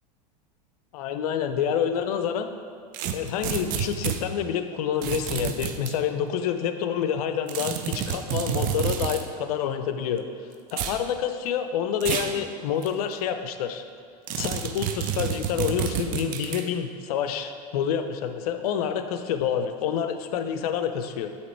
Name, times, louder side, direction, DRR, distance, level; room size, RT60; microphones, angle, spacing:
voice 1, 0.9-2.5 3.1-10.2 10.7-13.8 14.4-21.3, left 8 dB, 65° left, 8 dB, 0.5 m, -28 dB
sound 1, 2.9-4.2 5.0-5.9 7.5-9.3 10.7-11.0 12.0-12.4 12.8-12.9 14.3-16.7, right 9 dB, 40° right, 0.5 m, -29 dB
7.9 x 2.9 x 4.3 m, 2.1 s
hypercardioid pair, 90°, 21 cm